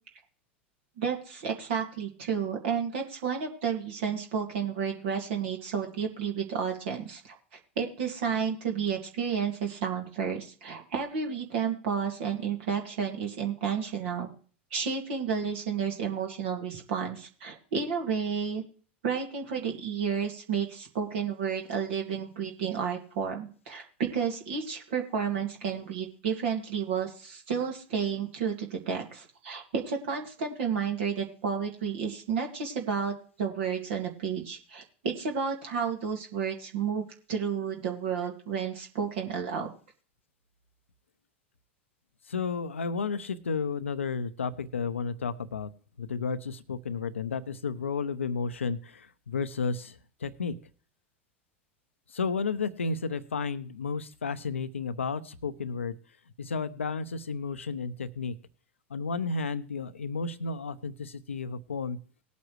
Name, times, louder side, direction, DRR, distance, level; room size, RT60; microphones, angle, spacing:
voice 1, 1.0-7.4 7.8-14.3 14.7-18.6 19.0-39.7, right 6 dB, 65° right, 2 dB, 2.1 m, -31 dB
voice 2, 42.3-45.7 46.0-49.9 50.2-50.5 52.1-55.9 56.4-58.3 58.9-62.0, left 5 dB, 85° left, 12 dB, 0.7 m, -32 dB
19.0 x 8.3 x 3.1 m, 0.43 s
hypercardioid pair, 90°, 7 cm